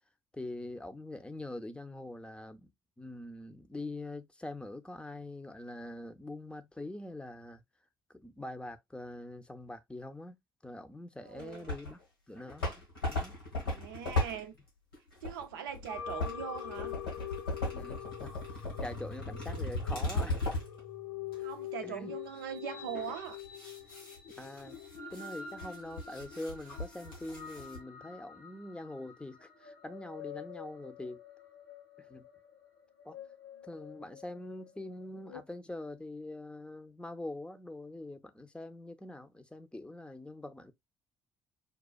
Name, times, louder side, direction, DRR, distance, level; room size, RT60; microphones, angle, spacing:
voice 1, 0.3-2.7 3.0-7.6 8.1-10.4 10.6-12.0 12.3-13.4 17.7-20.4 21.8-22.2 24.4-24.8 25.1-31.2 32.0-32.3 33.0-33.2 33.6-40.7, left 1 dB, 10° left, 0.6 m, -44 dB
voice 2, 11.2-11.7 13.6-14.5 15.2-17.0 21.4-23.4, right 8 dB, 75° right, 0.5 m, -41 dB
sound 1, 11.4-12.0 12.4-20.8 21.3-21.4 22.9-27.8, left 2 dB, 90° left, 1.7 m, -37 dB
sound 2, 15.9-35.4, left 8 dB, 75° left, 0.9 m, -45 dB
5.3 x 2.3 x 2.2 m
figure-of-eight pair, 50°, 12 cm